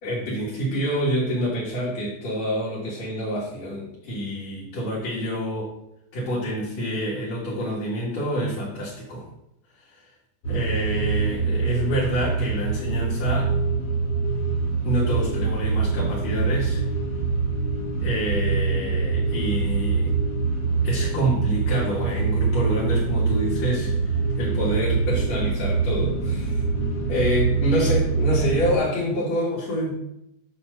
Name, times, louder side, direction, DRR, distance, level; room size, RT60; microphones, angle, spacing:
voice 1, 0.0-5.8 6.1-9.3 9.9-10.1 10.4-13.5 14.8-16.8 18.0-20.1 20.8-26.7 27.1-30.0, equal, 65° left, -7 dB, 2.9 m, -27 dB
sound 1, 10.4-28.8, right 4 dB, 45° left, 2.2 m, -24 dB
8.6 x 3.3 x 6.4 m, 0.82 s
omnidirectional pair, 3.3 m